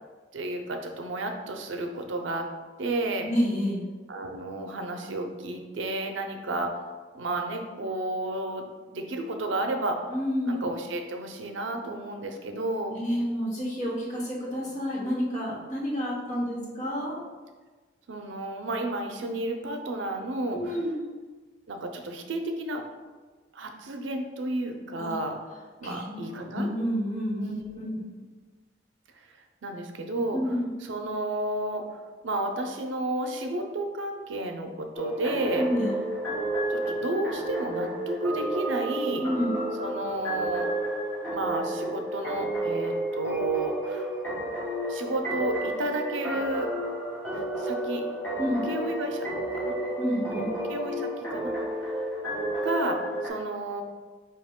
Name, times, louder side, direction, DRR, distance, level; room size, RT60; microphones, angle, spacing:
voice 1, 0.3-2.5 2.8-3.3 4.1-6.7 7.1-8.6 8.9-10.1 10.5-13.0 16.3-16.8 18.1-20.6 21.7-22.8 23.5-25.4 25.8-26.7 27.4-27.9 29.6-30.4 30.8-31.8 32.2-35.7 36.7-39.2 39.8-40.7 41.3-44.1 44.9-46.7 47.3-48.0 48.7-49.8 50.3-50.4 50.7-51.5 51.8-52.1 52.6-53.8, right 2 dB, 85° right, 4 dB, 0.6 m, -32 dB
voice 2, 3.2-3.8 10.1-10.6 12.9-17.2 20.5-21.0 25.0-25.1 25.8-27.9 30.3-30.7 35.5-36.0 39.2-39.5 48.4-48.6 50.0-50.5, equal, 40° left, -6 dB, 1.2 m, -29 dB
sound 1, 34.9-53.3, right 1 dB, 10° left, 1.2 m, -31 dB
4.8 x 2.9 x 3.6 m, 1.4 s
head